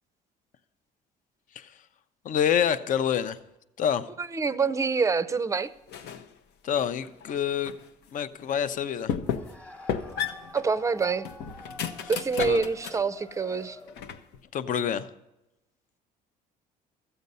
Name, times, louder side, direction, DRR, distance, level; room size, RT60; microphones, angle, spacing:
voice 1, 2.2-3.4 3.8-4.1 6.6-7.7 8.1-9.1 12.0-12.1 12.4-12.6 14.5-15.1, left 8 dB, 50° left, 0.6 m, -27 dB
voice 2, 4.3-5.7 10.5-11.3 12.1-13.8, right 5 dB, 20° right, 0.5 m, -26 dB
sound 1, 5.9-6.3 6.8-7.9 8.4-8.5 9.1-9.6 9.9-13.1 13.5-14.4, left 8 dB, 80° left, 0.8 m, -34 dB
sound 2, 9.2-14.1, left 2 dB, 10° left, 1.1 m, -47 dB
13.5 x 8.0 x 5.4 m
cardioid pair, 110°, 17 cm